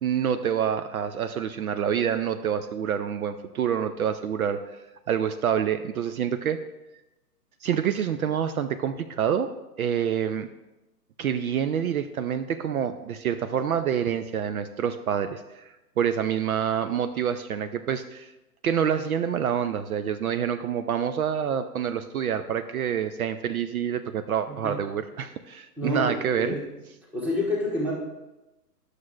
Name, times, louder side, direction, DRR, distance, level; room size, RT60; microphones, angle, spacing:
voice 1, 0.0-4.6 5.1-6.6 7.6-9.5 9.8-10.5 11.2-18.3 18.6-26.6, right 8 dB, 60° right, 10 dB, 0.5 m, -27 dB
voice 2, 25.8-26.6 27.1-27.9, left 1 dB, 5° right, -3 dB, 1.0 m, -28 dB
10.5 x 6.5 x 2.4 m, 1.0 s
hypercardioid pair, 135°, 49 cm